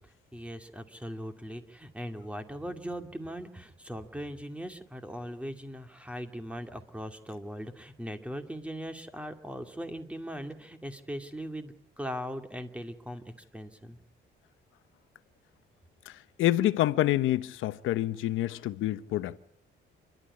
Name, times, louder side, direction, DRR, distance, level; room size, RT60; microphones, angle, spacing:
voice 1, 0.3-13.2 13.5-14.0, equal, 5° right, 2.4 m, -39 dB
voice 2, 16.4-19.3, left 14 dB, 90° left, 1.0 m, -27 dB
29.5 x 12.5 x 9.8 m
cardioid pair, 90°, 20 cm